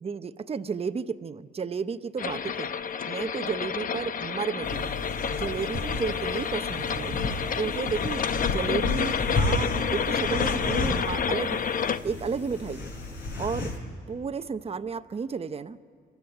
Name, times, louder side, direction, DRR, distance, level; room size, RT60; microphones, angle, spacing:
voice 1, 0.0-2.7 3.1-7.2 7.6-11.6 12.0-12.9 13.4-13.7 14.1-16.0, right 5 dB, 30° right, 10 dB, 0.8 m, -32 dB
sound 1, 2.2-12.0, left 7 dB, 45° left, 0.8 m, -29 dB
sound 2, 4.6-13.8, left 2 dB, 65° left, 5.4 m, -32 dB
27.0 x 13.5 x 9.5 m, 2.4 s
cardioid pair, 90°, 20 cm